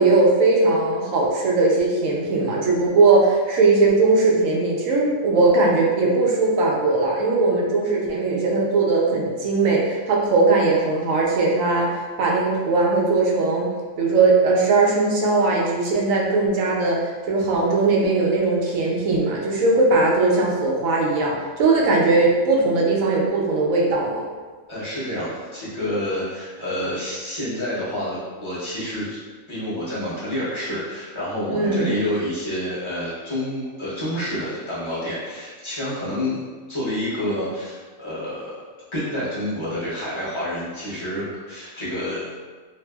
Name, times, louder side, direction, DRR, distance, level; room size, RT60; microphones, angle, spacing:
voice 1, 0.0-13.7 14.0-24.2 31.5-31.9, right 3 dB, 75° right, -2 dB, 0.9 m, -19 dB
voice 2, 24.7-29.2 29.5-36.4 36.7-38.6 38.9-42.3, left 1 dB, 25° left, -9 dB, 0.7 m, -28 dB
2.7 x 2.5 x 2.2 m, 1.4 s
omnidirectional pair, 1.5 m